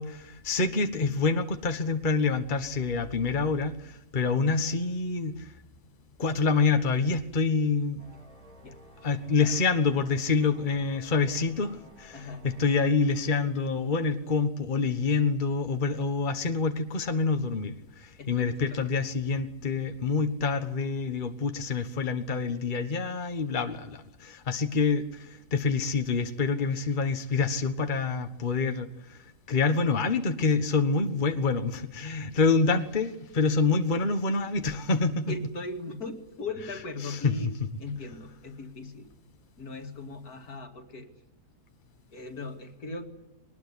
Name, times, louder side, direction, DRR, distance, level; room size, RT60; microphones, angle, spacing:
voice 1, 0.0-5.5 6.2-8.0 9.0-12.2 12.6-35.3 37.1-37.3, left 4 dB, 30° left, 1.5 m, -27 dB
sound 1, 8.0-13.8, equal, 60° right, 7.1 m, -54 dB
voice 2, 12.1-12.5 18.2-18.9 35.3-39.1 39.6-41.1 42.1-43.1, left 3 dB, 70° left, 2.7 m, -39 dB
22.0 x 19.5 x 9.8 m
omnidirectional pair, 1.7 m